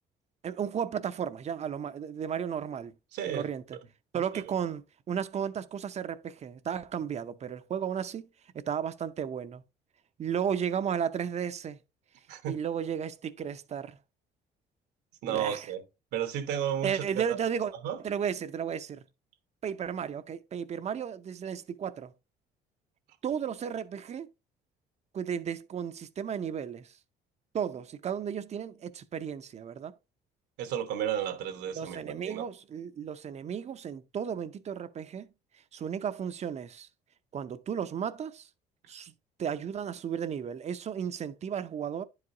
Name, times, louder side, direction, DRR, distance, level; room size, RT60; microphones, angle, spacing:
voice 1, 0.4-2.9 3.3-3.8 4.1-8.3 8.5-9.6 10.2-11.8 12.5-14.0 15.2-15.7 16.8-17.7 18.0-19.0 19.6-22.1 23.2-24.3 25.1-26.9 27.5-29.9 31.7-35.3 35.7-36.9 37.3-38.5 38.9-39.1 39.4-42.0, right 8 dB, 40° right, 0.7 m, -34 dB
voice 2, 3.1-3.5 12.3-12.6 15.2-15.8 16.1-17.4 17.8-18.0 30.6-32.4, right 9 dB, 80° right, 1.3 m, -33 dB
10.5 x 4.9 x 2.7 m
cardioid pair, 110°, 17 cm